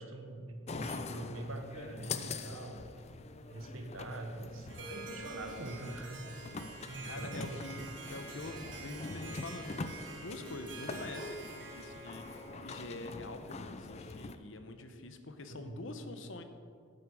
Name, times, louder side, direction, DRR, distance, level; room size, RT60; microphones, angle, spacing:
voice 1, 0.0-3.1 3.4-6.2 6.9-7.6 15.5-15.8, right 1 dB, 90° right, 5 dB, 1.3 m, -44 dB
sound 1, 0.7-14.4, left 3 dB, 30° left, 0.4 m, -44 dB
Harp, 4.7-13.4, right 3 dB, 65° right, 1.6 m, -48 dB
voice 2, 7.0-16.4, left 2 dB, 70° left, 8 dB, 0.9 m, -46 dB
11.0 x 8.9 x 4.8 m, 2.2 s
head